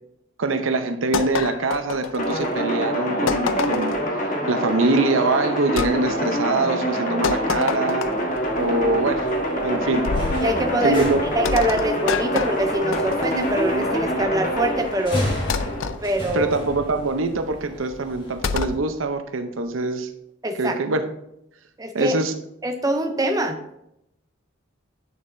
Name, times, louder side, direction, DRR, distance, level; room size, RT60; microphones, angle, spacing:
voice 1, 0.4-4.0 4.5-8.0 8.6-9.3 9.6-10.1 10.8-11.2 16.3-20.1 20.5-21.0 21.9-22.3, right 3 dB, 85° right, 8 dB, 0.7 m, -23 dB
sound 1, 1.1-2.6 3.3-4.1 5.8-5.9 7.2-8.4 10.0-10.5 11.4-13.6 15.5-16.0 18.4-18.8, left 6 dB, 80° left, 0.4 m, -27 dB
sound 2, 2.2-15.9, equal, 40° left, 1.3 m, -25 dB
sound 3, 8.3-18.7, equal, 25° left, 1.8 m, -35 dB
voice 2, 10.4-11.0 11.3-15.3 16.0-16.5 20.4-20.8 21.8-22.1 22.6-23.6, right 1 dB, 20° right, 5 dB, 0.5 m, -24 dB
8.7 x 6.8 x 2.6 m, 0.80 s
head